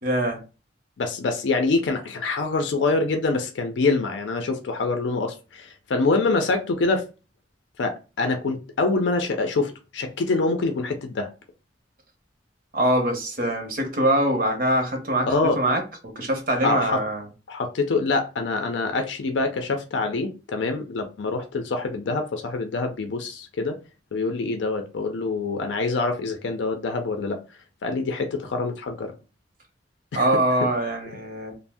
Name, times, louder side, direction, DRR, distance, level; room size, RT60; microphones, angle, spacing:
voice 1, 0.0-0.4 12.7-17.3 30.1-31.5, right 1 dB, 50° right, 0.7 m, -23 dB
voice 2, 1.0-7.0 7.8-11.3 15.3-15.6 16.6-17.0 17.5-23.8 24.1-27.4 27.8-29.1 30.1-30.3, left 3 dB, 85° left, 0.4 m, -25 dB
2.6 x 2.0 x 3.3 m
head